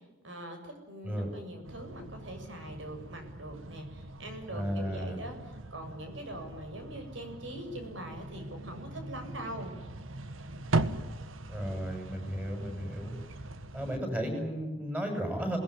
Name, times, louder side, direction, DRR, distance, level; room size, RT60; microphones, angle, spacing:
voice 1, 0.2-9.8, right 1 dB, 70° right, 5 dB, 7.4 m, -43 dB
sound 1, 1.6-14.0, right 2 dB, 85° right, 1.5 m, -39 dB
voice 2, 4.5-5.2 11.5-13.1 13.7-15.6, equal, 10° right, 4 dB, 6.8 m, -34 dB
28.0 x 20.0 x 10.0 m, 1.1 s
head